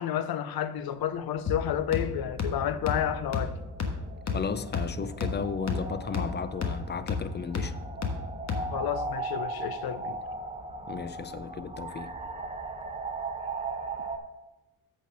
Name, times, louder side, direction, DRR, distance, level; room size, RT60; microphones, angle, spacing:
voice 1, 0.0-3.6 8.7-10.2, left 10 dB, 70° left, 0.7 m, -30 dB
sound 1, 0.9-14.2, right 3 dB, 15° right, 0.8 m, -39 dB
sound 2, 1.5-9.0, left 4 dB, 45° left, 1.4 m, -34 dB
voice 2, 4.3-7.7 10.9-12.1, left 6 dB, 30° left, 0.5 m, -34 dB
8.2 x 4.4 x 6.2 m
cardioid pair, 75°, 38 cm